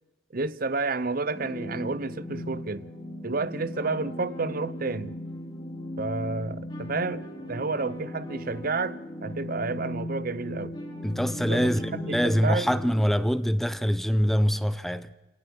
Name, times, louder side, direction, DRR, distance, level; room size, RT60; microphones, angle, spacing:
voice 1, 0.3-2.9 3.2-5.2 6.0-10.8 11.4-12.7, right 3 dB, 45° right, 0.8 m, -30 dB
sound 1, 1.3-13.1, left 1 dB, 20° left, 3.5 m, -37 dB
voice 2, 11.0-15.2, equal, ahead, 0.7 m, -24 dB
29.0 x 18.5 x 6.3 m
head